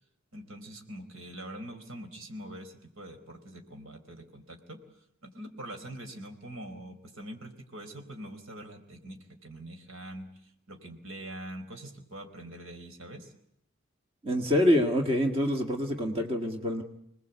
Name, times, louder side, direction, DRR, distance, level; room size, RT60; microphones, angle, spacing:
voice 1, 0.3-13.3, right 1 dB, 90° right, 6 dB, 4.4 m, -44 dB
voice 2, 14.2-16.8, left 1 dB, 25° right, 4 dB, 1.9 m, -26 dB
27.0 x 20.0 x 8.2 m, 0.77 s
head